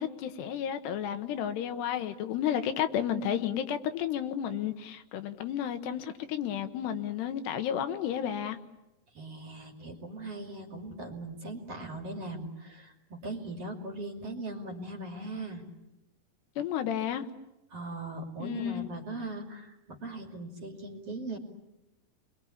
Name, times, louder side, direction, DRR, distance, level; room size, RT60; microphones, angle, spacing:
voice 1, 0.0-8.6 16.6-17.3 18.4-18.9, left 9 dB, 75° left, 3.1 m, -32 dB
voice 2, 9.1-15.6 17.7-21.4, right 2 dB, 40° right, 3.1 m, -39 dB
30.0 x 22.5 x 8.6 m
omnidirectional pair, 4.9 m